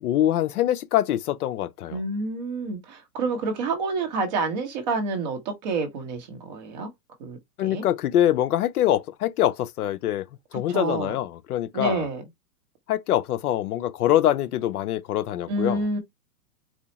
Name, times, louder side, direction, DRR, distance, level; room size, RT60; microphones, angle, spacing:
voice 1, 0.0-2.0 7.6-10.3 10.5-12.1 12.9-15.8, left 12 dB, 70° left, 0.5 m, -24 dB
voice 2, 1.9-6.9 7.2-7.8 10.7-11.2 11.7-12.2 15.5-16.0, right 3 dB, 25° right, 0.9 m, -28 dB
4.3 x 2.3 x 2.8 m
hypercardioid pair, 165°, 47 cm